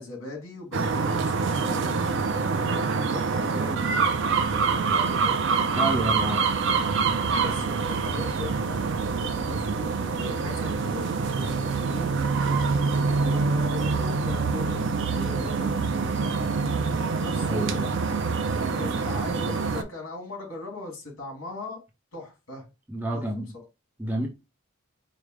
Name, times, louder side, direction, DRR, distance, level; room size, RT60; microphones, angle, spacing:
voice 1, 0.0-2.0 2.5-5.4 7.4-12.2 13.2-16.5 17.2-18.0 18.6-21.8 22.1-22.6 23.1-23.3, left 2 dB, 70° left, 2.1 m, -39 dB
sound 1, 0.7-19.8, right 4 dB, 60° right, 0.4 m, -25 dB
voice 2, 5.7-6.5 17.5-17.8 22.9-23.5 24.0-24.3, right 1 dB, 10° right, 0.6 m, -29 dB
4.9 x 2.1 x 3.1 m
head